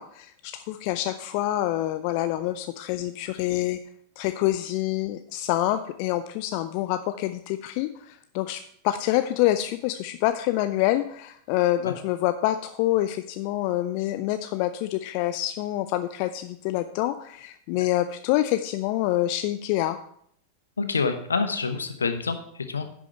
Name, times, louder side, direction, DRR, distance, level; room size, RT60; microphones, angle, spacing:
voice 1, 0.0-3.8 4.2-20.0, left 14 dB, 45° left, 10 dB, 0.4 m, -26 dB
voice 2, 20.8-22.8, left 4 dB, 75° left, 8 dB, 1.0 m, -27 dB
10.5 x 6.3 x 4.4 m, 0.67 s
figure-of-eight pair, 90°, 0 cm